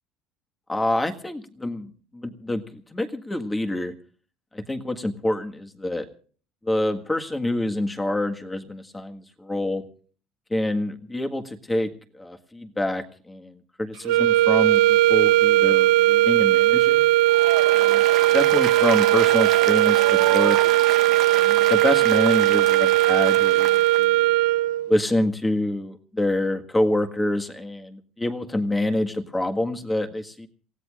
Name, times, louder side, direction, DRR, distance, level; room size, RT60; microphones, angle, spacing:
voice 1, 0.7-3.9 4.5-6.1 6.6-9.8 10.5-17.1 17.7-18.0 18.3-20.6 21.3-24.3 24.9-30.5, left 1 dB, 10° left, 6 dB, 1.6 m, -27 dB
sound 1, 14.0-24.9, right 15 dB, 90° right, 0.6 m, -18 dB
Applause, 17.3-24.0, right 12 dB, 60° right, 1.1 m, -30 dB
28.0 x 16.5 x 2.5 m, 0.43 s
cardioid pair, 130°, 0 cm